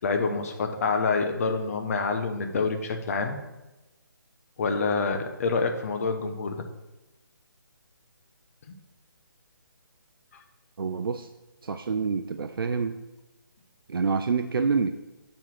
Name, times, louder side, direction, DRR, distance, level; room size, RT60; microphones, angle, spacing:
voice 1, 0.0-3.4 4.6-6.6 10.3-10.4, left 4 dB, 40° left, 5 dB, 0.9 m, -27 dB
voice 2, 10.8-11.3 11.6-13.0 13.9-15.0, right 5 dB, 75° right, 7 dB, 0.5 m, -27 dB
7.2 x 3.9 x 5.9 m, 1.0 s
figure-of-eight pair, 155°, 12 cm